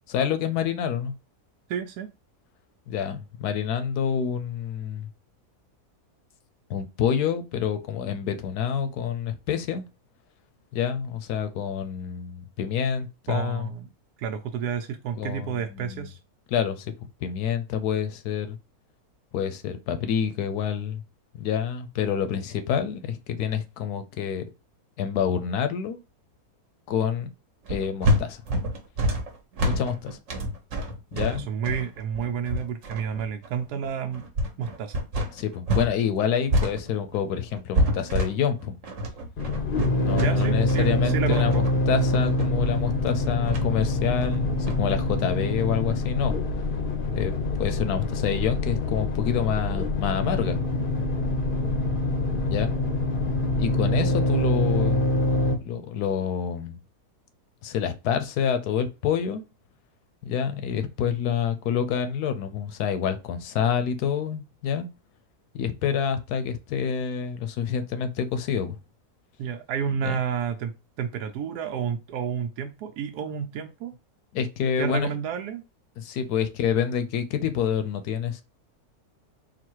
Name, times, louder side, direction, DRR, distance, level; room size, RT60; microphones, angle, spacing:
voice 1, 0.1-1.1 2.9-5.1 6.7-9.8 10.7-13.7 15.2-16.1 16.5-16.9 17.2-18.6 19.3-21.0 21.3-24.5 25.0-26.0 26.9-27.3 27.7-28.4 29.6-30.2 31.1-31.5 35.3-38.8 40.0-46.3 47.1-50.6 52.4-52.7 53.6-55.1 55.6-56.8 57.6-59.4 60.2-64.9 65.5-68.8 70.0-70.2 74.3-75.1 76.0-78.4, left 8 dB, 85° left, 1.2 m, -27 dB
voice 2, 1.7-2.1 13.3-13.9 14.2-16.2 31.1-34.3 34.6-35.1 40.1-41.7 69.4-74.0 74.8-75.6, right 7 dB, 90° right, 1.1 m, -30 dB
sound 1, 27.7-35.9 36.2-45.0, equal, 55° right, 1.2 m, -28 dB
sound 2, 39.4-55.6, left 2 dB, 45° left, 0.7 m, -25 dB
3.9 x 2.4 x 4.4 m
omnidirectional pair, 1.6 m